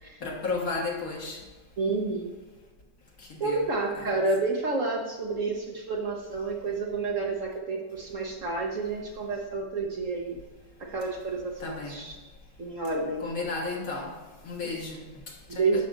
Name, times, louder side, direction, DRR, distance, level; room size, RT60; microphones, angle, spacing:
voice 1, 0.2-1.4 3.2-3.6 4.0-4.1 11.6-12.0 13.2-14.2 14.4-15.9, left 3 dB, 50° left, -1 dB, 1.7 m, -34 dB
voice 2, 1.8-2.3 3.4-10.4 10.8-12.2 12.6-13.2 14.6-14.8 15.5-15.9, right 3 dB, 50° right, 0 dB, 1.2 m, -30 dB
11.5 x 5.8 x 3.9 m, 1.2 s
omnidirectional pair, 2.0 m